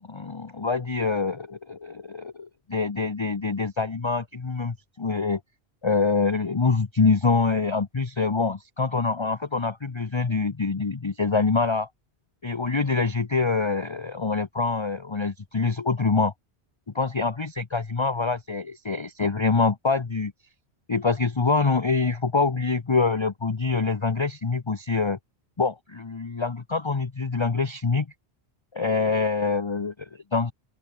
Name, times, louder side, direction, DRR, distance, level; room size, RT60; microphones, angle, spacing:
voice 1, 0.1-5.4 5.8-11.9 12.4-16.3 16.9-20.3 20.9-25.2 25.6-28.1 28.7-30.5, left 4 dB, 30° left, 0.8 m, -25 dB
open air
omnidirectional pair, 1.1 m